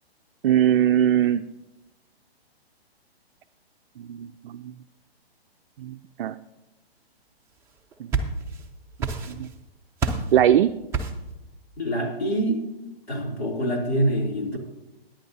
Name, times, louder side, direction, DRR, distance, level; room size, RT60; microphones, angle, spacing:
voice 1, 0.4-1.4 4.0-4.7 5.8-6.4 8.0-8.1 9.3-9.5 10.3-10.7, right 10 dB, 60° right, 8 dB, 0.4 m, -21 dB
sound 1, 7.7-8.7 9.0-9.6 10.0-10.4 10.9-11.3, right 4 dB, 10° right, 0.6 m, -28 dB
voice 2, 11.8-12.6 13.1-14.6, right 1 dB, 80° left, -1 dB, 3.2 m, -25 dB
15.0 x 10.0 x 2.8 m, 0.98 s
hypercardioid pair, 145°, 31 cm